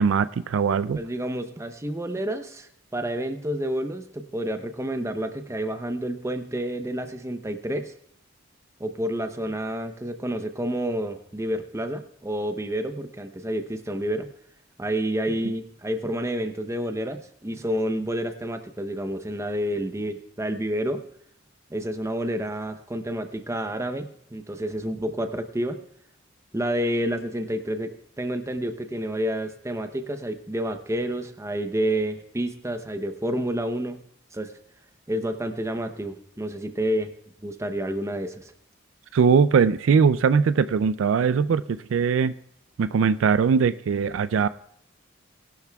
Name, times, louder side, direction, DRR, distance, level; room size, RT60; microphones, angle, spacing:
voice 1, 0.0-1.0 39.1-42.3 42.8-44.5, right 6 dB, 75° right, 14 dB, 0.4 m, -21 dB
voice 2, 1.0-7.9 8.8-14.3 14.8-21.0 21.7-25.8 26.5-34.0 34.3-34.5 35.1-37.1 37.4-38.4, right 1 dB, 15° right, 8 dB, 0.7 m, -29 dB
20.0 x 11.5 x 2.3 m, 0.66 s
head